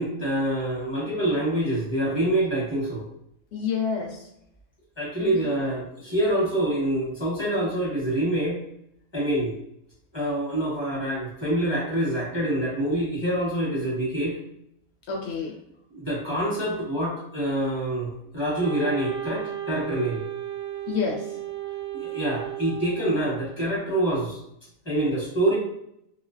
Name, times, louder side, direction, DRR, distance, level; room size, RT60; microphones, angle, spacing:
voice 1, 0.0-3.1 5.0-8.6 9.1-9.6 10.1-14.4 15.9-20.2 21.9-24.4 24.8-25.6, right 1 dB, 25° left, -7 dB, 0.7 m, -26 dB
voice 2, 3.5-4.3 5.2-5.4 15.1-15.6 20.9-21.4, left 5 dB, 60° left, 1 dB, 0.8 m, -28 dB
Wind instrument woodwind instrument, 18.6-23.7, right 12 dB, 40° right, 0.3 m, -34 dB
2.4 x 2.1 x 2.4 m, 0.77 s
omnidirectional pair, 1.5 m